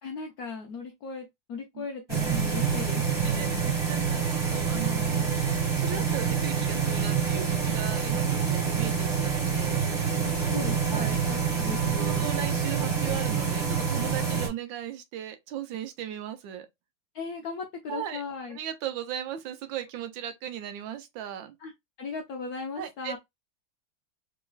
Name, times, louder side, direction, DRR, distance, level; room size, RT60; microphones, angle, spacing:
voice 1, 0.0-3.7 10.2-12.3 17.1-18.6 21.6-21.7 22.0-23.2, left 4 dB, 75° left, 0.8 m, -37 dB
sound 1, 2.1-14.5, right 6 dB, 15° right, 1.3 m, -27 dB
voice 2, 3.2-10.2 10.9-11.2 12.0-16.7 17.9-18.2 18.5-21.5 22.8-23.2, right 10 dB, 80° right, 1.3 m, -37 dB
3.9 x 2.9 x 2.3 m
omnidirectional pair, 2.2 m